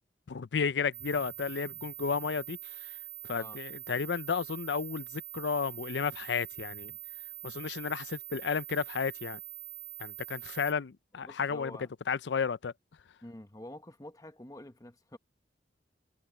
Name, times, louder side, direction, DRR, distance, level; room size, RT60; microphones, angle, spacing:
voice 1, 0.3-2.9 3.2-6.9 7.4-9.4 10.0-11.8 12.1-12.7, left 6 dB, 90° left, 0.5 m, -33 dB
sound 1, 0.9-10.7, right 19 dB, 90° right, 0.4 m, -44 dB
voice 2, 11.2-11.9 13.2-15.2, left 1 dB, 20° left, 1.0 m, -47 dB
head